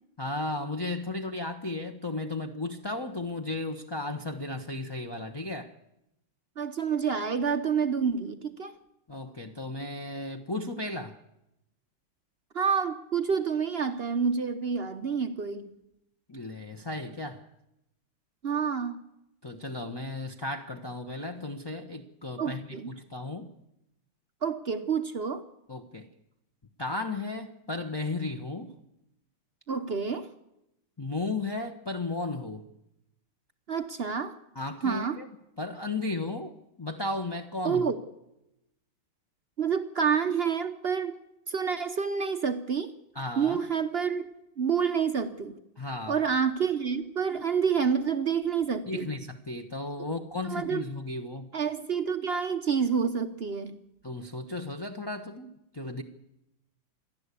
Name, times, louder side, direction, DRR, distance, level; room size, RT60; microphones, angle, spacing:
voice 1, 0.2-5.7 9.1-11.2 16.3-17.4 19.4-23.5 25.7-26.1 26.8-28.7 31.0-32.7 34.5-35.3 35.6-37.9 43.1-43.6 45.8-46.2 48.9-51.5 54.0-56.0, left 2 dB, 25° left, 2 dB, 0.6 m, -35 dB
voice 2, 6.6-8.8 12.5-15.7 18.4-19.0 22.4-22.9 24.4-25.4 29.7-30.3 33.7-34.4 34.8-35.2 37.6-38.0 39.6-41.2 41.5-42.9 43.4-45.6 46.1-49.1 50.4-50.8 51.5-53.8, right 6 dB, 55° right, 9 dB, 0.7 m, -28 dB
27.0 x 11.5 x 8.4 m, 0.85 s
omnidirectional pair, 2.2 m